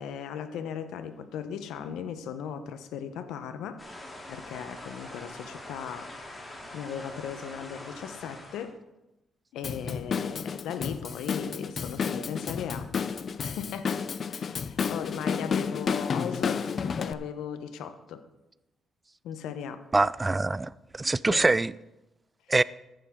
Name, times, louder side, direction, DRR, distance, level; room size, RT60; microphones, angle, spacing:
voice 1, 0.0-3.8 4.3-6.4 6.7-8.8 9.5-12.9 13.4-14.0 14.3-18.2 19.2-19.8 21.3-21.4, left 8 dB, 85° left, 1.0 m, -37 dB
sound 1, 3.8-8.7, left 1 dB, 20° left, 3.5 m, -44 dB
Drum kit / Drum, 9.6-17.1, left 6 dB, 50° left, 0.6 m, -31 dB
voice 2, 19.9-21.7 22.5-22.6, right 3 dB, 20° right, 0.4 m, -24 dB
14.0 x 11.0 x 3.8 m
cardioid pair, 90°, 0 cm